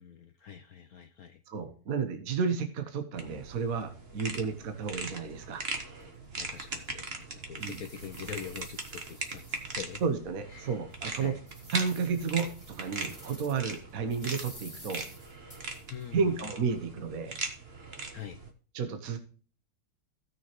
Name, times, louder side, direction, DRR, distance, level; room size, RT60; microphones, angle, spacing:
voice 1, 0.0-1.4 6.3-10.0 10.5-10.8 11.2-11.4 15.9-16.2 18.1-18.4, left 8 dB, 65° left, 7 dB, 1.0 m, -44 dB
voice 2, 1.5-5.6 7.6-7.8 10.0-11.4 11.7-15.0 16.1-17.4 18.7-19.2, right 5 dB, 50° right, 7 dB, 1.5 m, -32 dB
sound 1, 3.2-18.5, right 3 dB, 35° right, 1.5 m, -40 dB
sound 2, 6.0-6.1 6.6-6.7 7.2-10.0 10.5-10.6 11.1-13.8 14.1-16.0, left 1 dB, 10° left, 2.3 m, -51 dB
16.5 x 6.3 x 3.0 m, 0.40 s
omnidirectional pair, 2.0 m